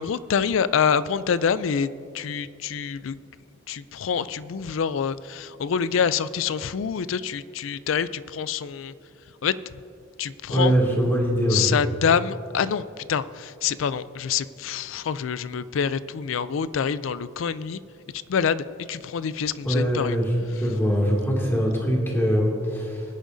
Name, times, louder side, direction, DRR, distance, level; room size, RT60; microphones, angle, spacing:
voice 1, 0.0-1.9 2.1-3.2 3.7-8.9 9.4-9.6 10.2-10.7 11.5-17.8 18.1-20.2 20.5-20.6, left 7 dB, 75° left, 16 dB, 0.4 m, -26 dB
voice 2, 10.5-11.7 19.6-20.3 20.6-23.0, equal, 10° left, -3 dB, 2.4 m, -22 dB
21.0 x 10.0 x 2.7 m, 2.5 s
head